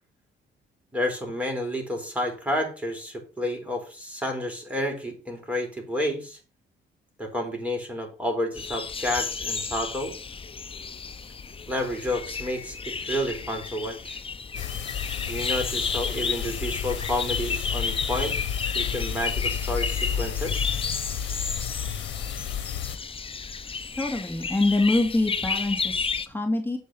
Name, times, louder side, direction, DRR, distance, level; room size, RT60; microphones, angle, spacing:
voice 1, 0.9-6.4 7.2-10.1 11.7-14.2 15.3-18.4 18.7-20.7, left 1 dB, 5° right, 2 dB, 3.9 m, -30 dB
sound 1, 8.5-26.3, left 5 dB, 25° left, 0.8 m, -32 dB
sound 2, 14.5-23.0, left 8 dB, 70° left, 1.2 m, -31 dB
voice 2, 24.0-26.8, left 2 dB, 10° left, 2 dB, 2.4 m, -25 dB
7.9 x 5.1 x 7.2 m, 0.34 s
cardioid pair, 90°, 20 cm